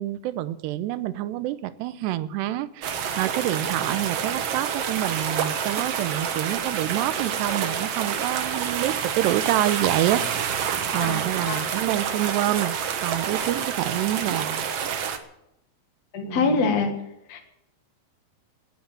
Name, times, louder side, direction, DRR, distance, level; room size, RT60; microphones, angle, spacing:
voice 1, 0.0-12.8 13.0-14.7 16.2-16.7, right 14 dB, 85° right, 15 dB, 3.0 m, -27 dB
sound 1, 2.8-15.2, right 7 dB, 65° right, 1.5 m, -28 dB
voice 2, 16.1-16.9 17.3-17.4, left 4 dB, 50° left, 4 dB, 2.4 m, -24 dB
19.0 x 10.0 x 7.6 m, 0.83 s
omnidirectional pair, 4.8 m